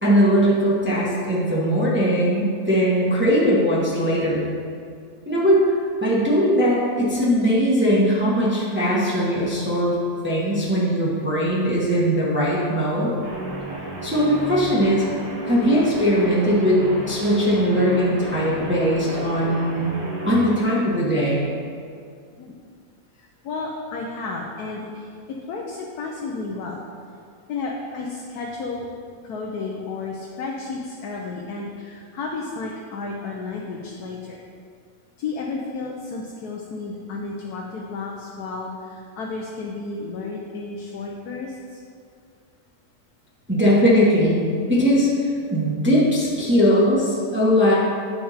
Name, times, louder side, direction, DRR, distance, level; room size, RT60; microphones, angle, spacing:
voice 1, 0.0-4.5 5.3-10.0 10.2-13.1 14.0-15.0 15.4-20.0 20.3-21.5 43.5-45.1 45.5-47.7, equal, 10° right, -7 dB, 1.3 m, -20 dB
Guitar, 13.2-20.6, right 1 dB, 85° right, 2.2 m, -33 dB
voice 2, 23.1-26.8 27.5-28.9 29.2-34.4 35.2-41.8, left 3 dB, 85° left, -2 dB, 1.3 m, -32 dB
8.6 x 5.7 x 4.2 m, 2.3 s
omnidirectional pair, 1.6 m